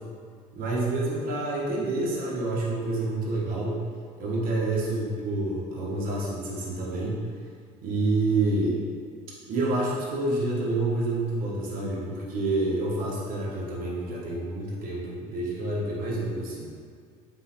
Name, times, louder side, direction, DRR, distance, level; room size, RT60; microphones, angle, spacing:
voice 1, 0.5-3.9 4.2-7.3 7.8-8.8 9.5-16.7, right 2 dB, 60° right, -5 dB, 1.1 m, -28 dB
3.8 x 3.7 x 2.9 m, 2.2 s
supercardioid pair, 90°, 16 cm